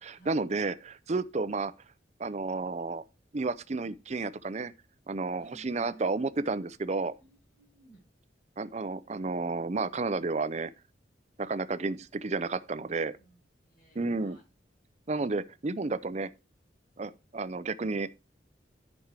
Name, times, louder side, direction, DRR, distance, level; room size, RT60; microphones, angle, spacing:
voice 1, 0.0-1.7 2.2-3.0 3.3-4.7 5.1-7.1 8.6-10.7 11.4-13.2 14.0-14.4 15.1-16.3 17.0-18.1, right 3 dB, 35° right, 0.5 m, -31 dB
voice 2, 5.4-6.1 7.2-8.1 12.5-12.7 13.2-14.4, right 3 dB, 50° left, 5.7 m, -57 dB
10.5 x 5.4 x 4.7 m
head